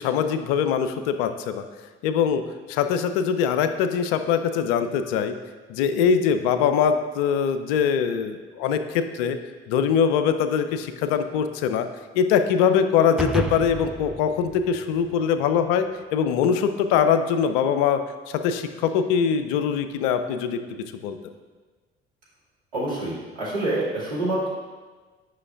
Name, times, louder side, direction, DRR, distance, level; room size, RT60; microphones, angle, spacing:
voice 1, 0.0-1.6 2.0-2.4 2.7-5.4 5.7-9.4 9.7-11.9 12.1-18.0 18.3-21.2, left 7 dB, 65° left, 9 dB, 0.5 m, -22 dB
sound 1, 13.2-15.7, right 2 dB, ahead, 0.4 m, -32 dB
voice 2, 22.7-24.5, right 2 dB, 75° right, -8 dB, 2.2 m, -27 dB
9.5 x 5.7 x 2.4 m, 1.4 s
figure-of-eight pair, 50°, 31 cm